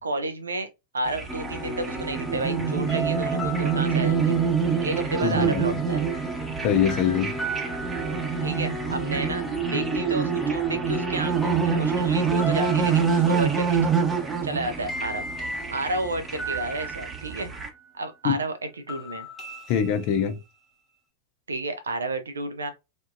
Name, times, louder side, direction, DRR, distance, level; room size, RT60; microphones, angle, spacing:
voice 1, 0.0-0.7 0.9-4.4 4.8-6.0 8.4-9.4 9.7-13.8 14.4-15.2 15.7-17.5 17.9-19.3 21.5-22.7, right 2 dB, 70° right, 0.6 m, -31 dB
sound 1, 1.1-17.7, right 6 dB, 20° right, 0.9 m, -26 dB
sound 2, 1.3-17.9 18.9-20.6, right 1 dB, 15° left, 1.1 m, -35 dB
voice 2, 5.2-5.8 6.6-7.3 18.2-18.4 19.7-20.4, left 8 dB, 45° left, 0.6 m, -23 dB
3.5 x 2.5 x 2.5 m
figure-of-eight pair, 90°, 0 cm